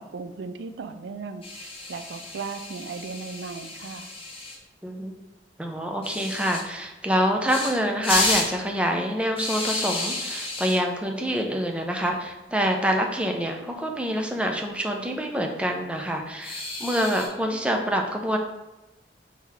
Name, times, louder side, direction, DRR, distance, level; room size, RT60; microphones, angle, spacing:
voice 1, 0.0-4.1, right 4 dB, 75° right, 9 dB, 0.4 m, -37 dB
sound 1, 1.4-4.6 6.0-6.6 7.5-7.7 8.0-8.5 9.4-10.8 12.0-12.2 12.5-12.6 12.9-13.0 14.3-14.8 16.4-17.3, left 2 dB, 30° left, 0.9 m, -31 dB
voice 2, 4.8-5.1 5.6-18.4, equal, 5° right, 2 dB, 0.5 m, -26 dB
3.9 x 2.8 x 4.6 m, 1.0 s
head